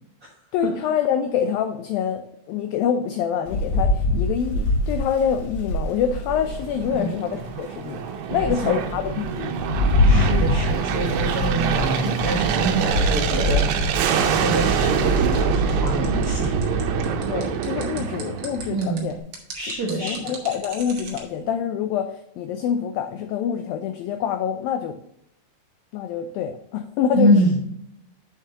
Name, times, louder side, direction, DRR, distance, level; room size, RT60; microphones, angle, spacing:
voice 1, 0.5-8.0 8.3-9.6 17.3-19.2 19.6-19.7 20.0-25.0 25.9-27.4, left 8 dB, 85° left, 7 dB, 2.0 m, -26 dB
Rain, 3.5-7.0 7.5-7.6 8.1-14.7, left 2 dB, 65° left, 1.9 m, -24 dB
Aircraft, 6.2-18.9, right 6 dB, 90° right, 3.0 m, -25 dB
voice 2, 8.3-8.8 10.0-16.6 18.7-19.1 19.5-20.3 27.1-27.5, right 1 dB, 75° right, -3 dB, 1.3 m, -25 dB
sound 1, 14.3-21.2, right 5 dB, 55° right, 1.6 m, -39 dB
7.5 x 7.1 x 2.9 m, 0.73 s
omnidirectional pair, 4.8 m